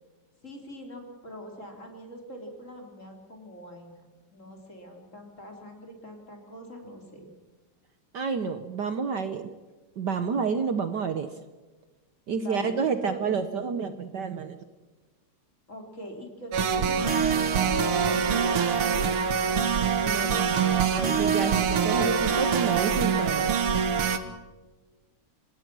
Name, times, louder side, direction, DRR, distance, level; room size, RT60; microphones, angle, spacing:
voice 1, 0.4-4.0 4.3-7.3 12.3-13.2 15.7-19.9, equal, 35° left, 2 dB, 4.1 m, -43 dB
voice 2, 8.1-9.5 10.0-11.3 12.3-14.6 20.0-23.6, right 5 dB, 60° right, 9 dB, 1.5 m, -29 dB
sound 1, 16.5-24.2, right 6 dB, 80° right, 2.3 m, -24 dB
26.0 x 20.0 x 6.2 m, 1.3 s
omnidirectional pair, 2.4 m